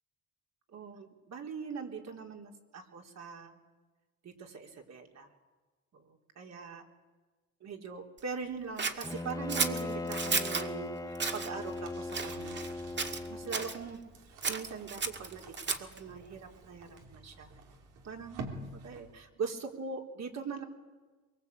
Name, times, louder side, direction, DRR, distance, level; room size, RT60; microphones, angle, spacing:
voice 1, 0.7-3.6 4.2-5.3 5.9-6.8 7.6-12.7 13.0-14.0 14.5-17.5 18.0-20.6, right 5 dB, 60° right, 2 dB, 3.8 m, -42 dB
Scissors, 8.8-10.7 11.1-11.5 12.1-12.7 13.0-13.8 14.4-16.0, right 4 dB, 35° right, 2.2 m, -33 dB
Bowed string instrument, 9.0-13.9, left 2 dB, 10° left, 0.9 m, -39 dB
sound 1, 11.5-19.3, right 2 dB, 90° right, 3.5 m, -49 dB
23.5 x 23.0 x 8.4 m, 1.3 s
cardioid pair, 90°, 30 cm